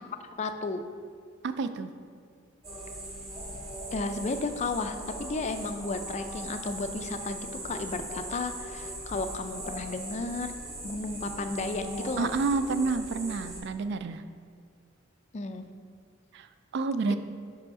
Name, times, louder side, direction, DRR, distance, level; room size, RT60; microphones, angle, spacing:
voice 1, 0.4-0.8 3.9-10.5 10.8-12.3 15.3-15.7 17.1-17.2, left 3 dB, 35° left, 8 dB, 0.3 m, -33 dB
voice 2, 1.4-1.9 12.2-14.2 16.3-16.5 16.7-17.2, right 4 dB, 55° right, 10 dB, 0.3 m, -29 dB
sound 1, 2.6-13.6, right 1 dB, 30° right, 1.4 m, -40 dB
5.5 x 4.9 x 4.8 m, 2.2 s
head